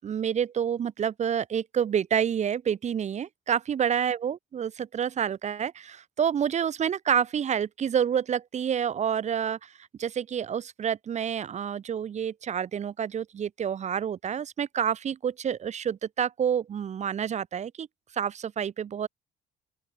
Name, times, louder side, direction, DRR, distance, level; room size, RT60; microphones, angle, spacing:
voice 1, 0.0-17.9 18.1-19.1, right 8 dB, 45° right, 1.3 m, -28 dB
open air
cardioid pair, 110°, 17 cm